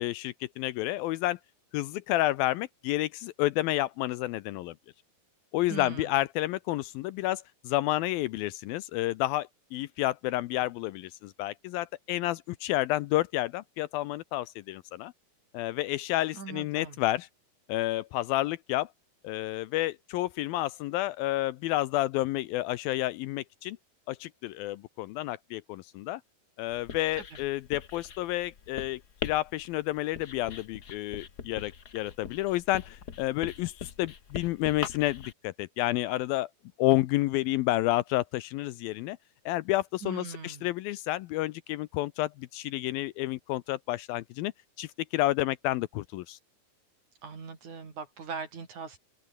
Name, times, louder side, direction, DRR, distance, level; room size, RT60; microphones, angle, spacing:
voice 1, 0.0-1.4 1.7-4.8 5.5-15.1 15.5-17.3 17.7-18.9 19.2-23.8 24.1-26.2 26.6-36.5 36.8-39.2 39.5-44.5 44.8-46.4, left 16 dB, 80° left, 2.3 m, -30 dB
voice 2, 5.7-6.2 16.3-17.0 27.2-27.4 40.0-40.7 47.2-49.0, right 5 dB, 50° right, 5.4 m, -40 dB
Writing, 26.7-35.3, left 6 dB, 55° left, 1.1 m, -42 dB
open air
omnidirectional pair, 4.5 m